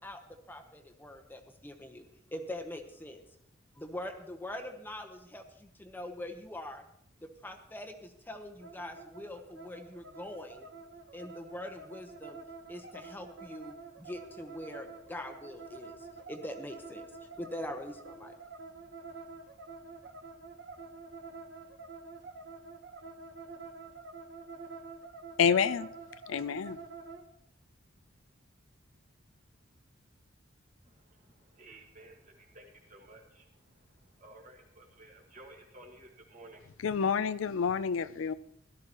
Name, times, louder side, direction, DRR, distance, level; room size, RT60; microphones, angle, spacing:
voice 1, 0.0-2.0 2.3-3.2 3.7-6.8 7.2-10.7 11.1-12.4 12.7-18.4, left 1 dB, 10° left, 4 dB, 0.9 m, -43 dB
sound 1, 8.6-27.2, right 4 dB, 60° right, 1.1 m, -48 dB
voice 2, 25.4-25.9 26.3-26.8 36.8-38.3, left 6 dB, 80° left, 14 dB, 0.4 m, -28 dB
voice 3, 30.8-36.8, right 2 dB, 40° right, 2 dB, 2.0 m, -55 dB
17.0 x 12.5 x 3.0 m, 0.73 s
head